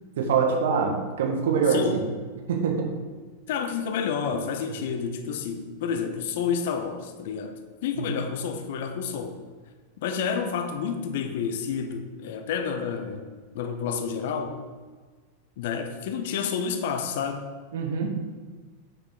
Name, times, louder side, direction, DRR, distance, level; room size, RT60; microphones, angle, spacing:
voice 1, 0.2-2.0 2.5-2.9 4.7-4.8 7.9-8.1 17.7-18.2, right 5 dB, 60° right, 2 dB, 1.5 m, -24 dB
voice 2, 1.7-2.0 3.5-9.4 10.0-14.6 15.6-17.5, left 6 dB, 55° left, 7 dB, 0.8 m, -30 dB
8.5 x 5.8 x 3.8 m, 1.4 s
figure-of-eight pair, 90°, 0 cm